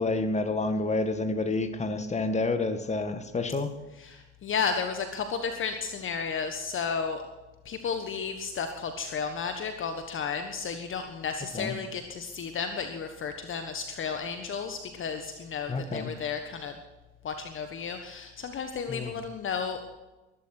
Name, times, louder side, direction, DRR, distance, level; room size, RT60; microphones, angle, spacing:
voice 1, 0.0-3.7 11.5-11.7 15.7-16.1 18.9-19.2, left 3 dB, 20° left, 9 dB, 1.9 m, -29 dB
voice 2, 4.0-7.2 7.6-16.7 17.2-19.8, left 6 dB, 35° left, 7 dB, 1.5 m, -33 dB
21.5 x 12.0 x 4.6 m, 1.1 s
figure-of-eight pair, 65°, 35 cm